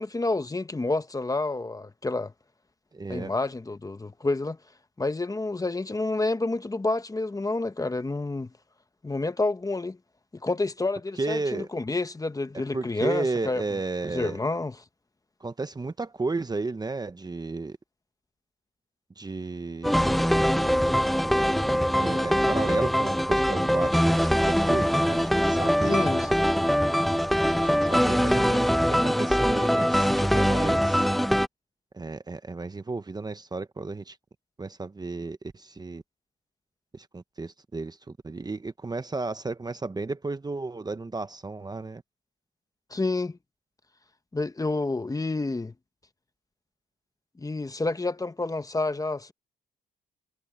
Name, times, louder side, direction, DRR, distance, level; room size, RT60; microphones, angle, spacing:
voice 1, 0.0-2.3 3.1-4.6 5.0-8.5 9.0-10.0 10.4-13.6 14.1-14.7 25.9-26.3 42.9-43.4 44.3-45.7 47.4-49.3, left 2 dB, 15° left, 1.2 m, -29 dB
voice 2, 2.9-3.3 11.2-11.7 12.7-14.4 15.4-17.8 19.2-20.2 22.0-26.0 27.5-31.1 31.9-34.2 34.6-36.0 36.9-42.0, right 3 dB, 20° right, 1.0 m, -33 dB
sound 1, 19.8-31.5, equal, ahead, 0.3 m, -23 dB
cardioid pair, 90°, 20 cm